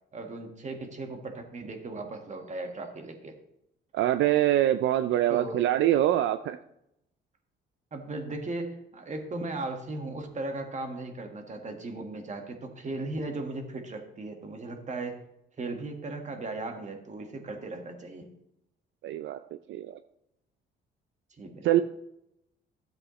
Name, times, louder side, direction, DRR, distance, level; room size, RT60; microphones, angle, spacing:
voice 1, 0.1-3.3 5.3-5.6 7.9-15.2 15.6-18.3 21.4-21.8, right 2 dB, 35° right, 4 dB, 1.7 m, -37 dB
voice 2, 3.9-6.6 19.0-20.0 21.6-21.8, right 13 dB, 75° right, 11 dB, 0.4 m, -24 dB
13.0 x 7.8 x 3.1 m, 0.82 s
cardioid pair, 90°, 20 cm